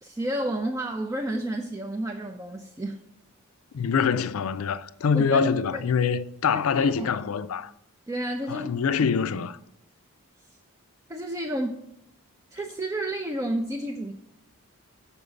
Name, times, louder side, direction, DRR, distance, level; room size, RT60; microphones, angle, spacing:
voice 1, 0.0-3.0 5.1-5.8 6.5-7.1 8.1-8.7 11.1-11.8 12.5-14.1, right 1 dB, 15° right, 0.4 m, -31 dB
voice 2, 3.7-7.7 8.5-9.6, left 6 dB, 80° left, 0.4 m, -25 dB
7.1 x 5.2 x 6.9 m
head